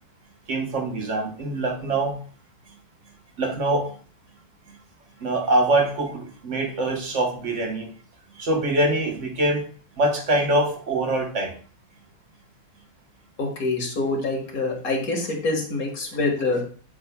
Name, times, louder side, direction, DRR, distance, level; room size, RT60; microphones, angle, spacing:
voice 1, 0.5-2.3 3.4-3.9 5.2-7.9 8.4-9.7 10.0-11.6, right 2 dB, 45° right, 3 dB, 1.2 m, -24 dB
voice 2, 13.4-16.6, left 3 dB, 45° left, 0 dB, 2.1 m, -25 dB
8.5 x 6.9 x 2.2 m, 0.42 s
omnidirectional pair, 2.2 m